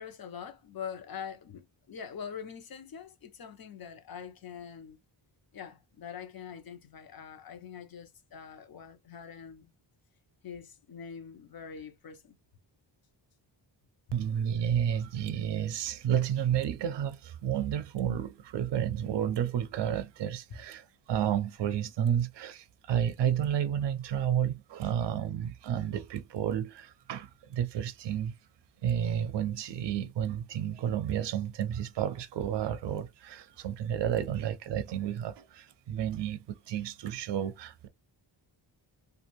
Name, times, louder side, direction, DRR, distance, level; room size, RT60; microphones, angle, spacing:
voice 1, 0.0-5.0 5.5-9.7 10.4-12.4 20.5-20.6 34.1-34.3, left 7 dB, 50° left, 0.7 m, -44 dB
voice 2, 14.1-28.3 28.8-37.9, right 9 dB, 65° right, 0.5 m, -31 dB
2.5 x 2.4 x 2.9 m
wide cardioid pair, 110°, 46 cm